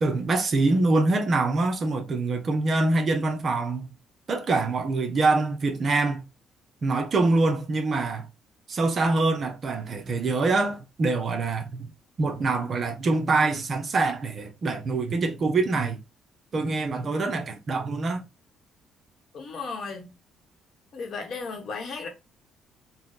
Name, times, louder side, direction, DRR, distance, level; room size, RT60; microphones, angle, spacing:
voice 1, 0.0-3.9 4.3-6.2 6.8-8.3 8.7-11.9 12.2-16.0 16.5-18.2, right 3 dB, 40° right, 0.7 m, -25 dB
voice 2, 19.3-20.1 20.9-22.1, left 4 dB, 50° left, 1.1 m, -35 dB
4.2 x 2.3 x 3.8 m
cardioid pair, 125°, 0 cm